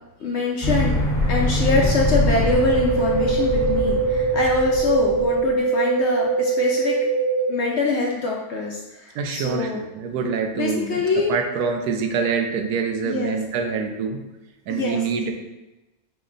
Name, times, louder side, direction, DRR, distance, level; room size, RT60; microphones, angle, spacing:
voice 1, 0.2-1.0 1.3-6.9 7.5-9.8 10.5-11.3 13.0-13.4 14.7-15.0, left 4 dB, 65° left, -1 dB, 0.7 m, -24 dB
sound 1, 0.6-5.4, left 1 dB, 40° left, 1.0 m, -24 dB
sound 2, 2.5-7.5, right 4 dB, 70° right, 1.5 m, -22 dB
voice 2, 9.1-11.0 11.3-14.2 14.7-15.3, right 5 dB, 85° right, 4 dB, 1.1 m, -25 dB
5.0 x 2.1 x 3.8 m, 1.0 s
omnidirectional pair, 1.6 m